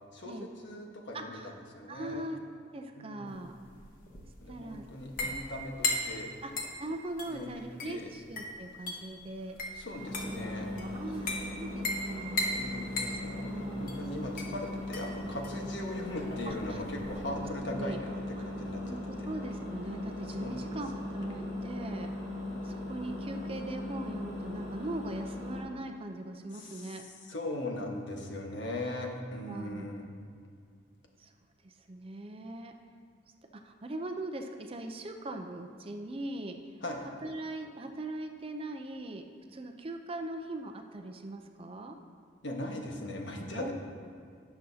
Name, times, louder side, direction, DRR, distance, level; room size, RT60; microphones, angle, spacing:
voice 1, 0.1-2.2 2.9-3.4 4.4-6.3 7.3-7.5 7.8-8.1 9.7-10.7 12.6-18.8 19.2-19.3 20.4-20.6 26.5-27.0 27.3-30.1 36.8-37.0 42.4-43.7, left 1 dB, 65° left, 1 dB, 1.3 m, -39 dB
voice 2, 1.1-1.5 1.9-2.4 2.7-3.5 4.5-4.8 6.4-6.5 6.8-9.6 10.8-12.4 13.1-13.9 16.5-16.8 17.7-18.0 18.4-18.5 18.8-22.1 22.6-27.0 29.5-29.9 31.2-31.3 31.6-32.7 33.5-36.6 37.2-39.3 39.5-42.0 43.5-43.7, right 2 dB, 30° right, 5 dB, 0.5 m, -40 dB
sound 1, 3.3-17.3, left 2 dB, 45° left, 1.3 m, -38 dB
Engine, 10.0-25.6, left 1 dB, 85° left, 2.7 m, -39 dB
17.5 x 6.9 x 2.8 m, 2.3 s
head